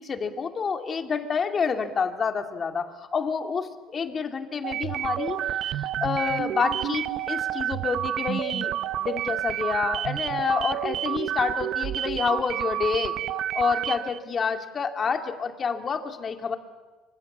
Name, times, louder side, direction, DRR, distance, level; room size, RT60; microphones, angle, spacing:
voice 1, 0.0-13.1 13.5-16.6, left 5 dB, 30° left, 5 dB, 2.6 m, -28 dB
sound 1, 4.6-14.2, right 12 dB, 60° right, 0.8 m, -29 dB
28.0 x 25.5 x 7.3 m, 1.2 s
cardioid pair, 125°, 0 cm